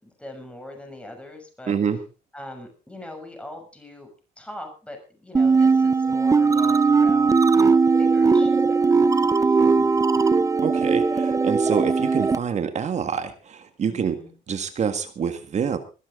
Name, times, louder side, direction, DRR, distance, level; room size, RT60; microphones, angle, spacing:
voice 1, 0.0-1.7 2.3-4.1 4.4-10.0 13.9-14.3, left 1 dB, 5° left, 4 dB, 6.5 m, -41 dB
voice 2, 1.7-2.0 10.6-14.2 14.5-15.8, right 7 dB, 45° right, 9 dB, 1.8 m, -26 dB
sound 1, 5.3-12.4, right 4 dB, 20° right, 0.8 m, -19 dB
21.0 x 12.5 x 3.8 m, 0.34 s
cardioid pair, 110°, 17 cm